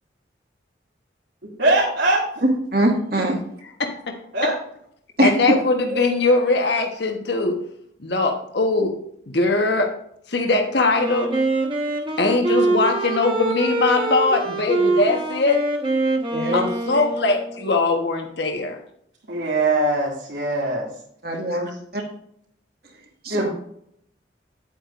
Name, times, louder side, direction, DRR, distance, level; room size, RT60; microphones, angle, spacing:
voice 1, 1.4-2.2 4.3-4.6 5.9-6.1 16.4-16.6 19.3-20.9 23.3-23.5, right 2 dB, 70° right, 2.6 m, -22 dB
voice 2, 2.4-3.4 5.2-5.6 16.3-16.6 21.2-22.0 22.8-23.0 23.2-23.5, right 1 dB, 55° right, 2.0 m, -22 dB
voice 3, 3.8-4.2 5.2-7.6 8.0-8.9 9.3-9.9 10.3-11.3 12.2-15.6 16.5-18.8, left 3 dB, 65° left, 1.3 m, -21 dB
Wind instrument woodwind instrument, 10.9-17.6, right 2 dB, 25° right, 1.4 m, -24 dB
10.0 x 8.7 x 2.6 m
head